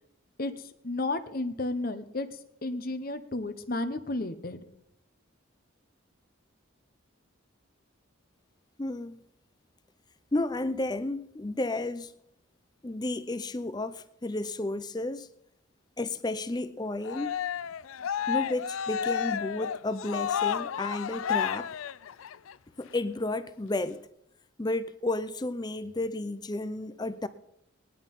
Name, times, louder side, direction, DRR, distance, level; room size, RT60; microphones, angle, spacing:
voice 1, 0.4-2.3 2.6-4.7, left 2 dB, 45° left, 0.9 m, -32 dB
voice 2, 8.8-9.2 10.3-12.1 12.8-15.3 16.0-17.3 18.3-21.7 22.8-24.0 24.6-27.3, left 2 dB, 20° left, 0.5 m, -32 dB
Cheering, 17.0-22.5, left 8 dB, 80° left, 0.4 m, -31 dB
18.5 x 10.5 x 5.4 m
head